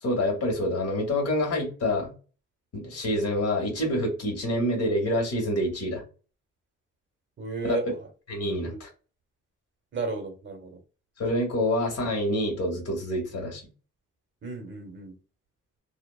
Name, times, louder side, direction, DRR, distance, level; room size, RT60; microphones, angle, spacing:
voice 1, 0.0-2.1 2.7-6.0 7.6-7.8 8.3-8.9 11.2-13.6, left 1 dB, 55° left, 0 dB, 1.5 m, -27 dB
voice 2, 7.4-7.8 8.6-8.8 9.9-10.8 14.4-15.2, right 4 dB, 40° right, 4 dB, 1.0 m, -33 dB
2.7 x 2.1 x 2.3 m, 0.36 s
cardioid pair, 90°, 30 cm